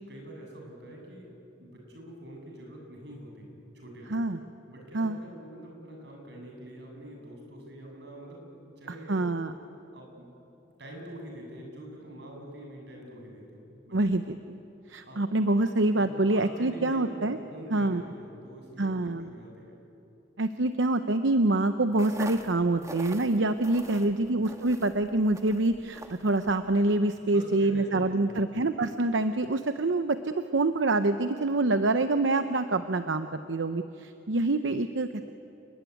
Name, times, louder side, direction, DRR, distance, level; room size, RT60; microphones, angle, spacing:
voice 1, 0.1-1.3 1.6-4.2 4.7-9.3 9.9-10.3 10.8-14.0 15.0-15.3 15.9-19.8 23.9-24.3 27.3-28.5, equal, 65° right, 0 dB, 7.6 m, -45 dB
voice 2, 9.1-9.5 13.9-14.6 14.9-17.4 17.7-18.0 18.8-19.3 20.4-35.3, right 2 dB, 85° right, 9 dB, 0.9 m, -26 dB
sound 1, 21.9-27.0, right 2 dB, 15° right, 1.6 m, -45 dB
29.5 x 21.0 x 9.4 m, 3.0 s
head